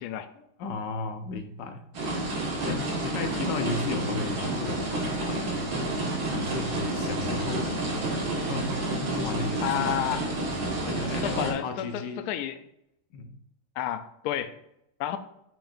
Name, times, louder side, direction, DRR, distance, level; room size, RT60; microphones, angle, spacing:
voice 1, 0.4-1.9 2.7-5.7 6.3-10.0 10.8-12.3 13.1-13.4, left 3 dB, 70° left, 6 dB, 1.3 m, -35 dB
sound 1, 1.9-11.5, right 2 dB, 70° right, 2.4 m, -30 dB
voice 2, 9.6-10.3 11.2-12.6 13.8-14.5 15.0-15.2, left 11 dB, 85° left, 10 dB, 0.8 m, -30 dB
8.8 x 5.5 x 2.5 m, 0.78 s
omnidirectional pair, 2.2 m